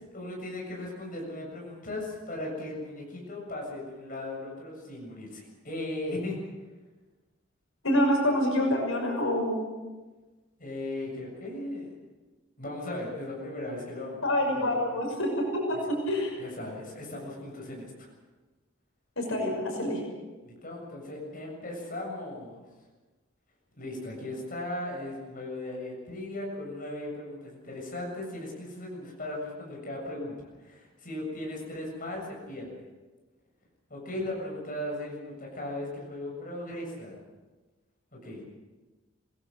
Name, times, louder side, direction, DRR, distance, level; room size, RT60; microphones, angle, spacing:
voice 1, 0.1-6.4 10.6-11.9 12.6-14.9 15.7-15.8 16.1-16.2 16.4-18.1 20.4-22.6 23.8-32.8 33.9-37.2 38.1-38.5, left 1 dB, 40° left, -1 dB, 7.3 m, -37 dB
voice 2, 7.8-9.6 14.2-16.3 19.2-20.0, left 1 dB, 90° left, 1 dB, 6.2 m, -27 dB
26.5 x 18.0 x 6.6 m, 1.2 s
head